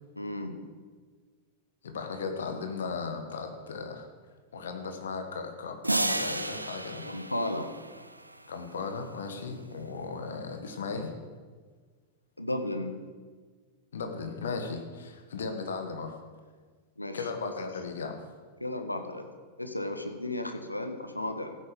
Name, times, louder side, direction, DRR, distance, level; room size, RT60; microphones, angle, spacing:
voice 1, 0.2-0.5 7.0-7.7 12.4-12.9 17.0-17.2 18.6-19.3 19.6-21.6, left 1 dB, 85° left, 6 dB, 1.1 m, -34 dB
voice 2, 1.8-4.1 4.5-7.1 8.5-11.1 13.9-16.2 17.1-18.2, left 4 dB, 65° left, 5 dB, 1.6 m, -36 dB
sound 1, 5.8-8.3, right 1 dB, 85° right, 0.5 m, -32 dB
14.5 x 8.8 x 5.2 m, 1.5 s
figure-of-eight pair, 90°, 0 cm